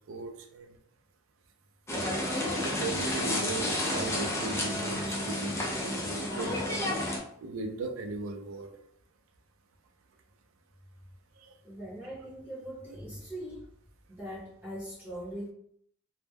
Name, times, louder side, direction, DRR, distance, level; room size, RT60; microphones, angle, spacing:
voice 1, 0.1-0.8 2.6-6.5 7.4-8.7 11.4-11.6, right 3 dB, 90° right, 4 dB, 0.4 m, -38 dB
sound 1, 1.9-7.2, left 1 dB, 15° left, 0.4 m, -31 dB
voice 2, 11.6-13.6 14.1-15.5, right 1 dB, 15° right, -10 dB, 0.7 m, -41 dB
2.1 x 2.1 x 3.3 m, 0.67 s
head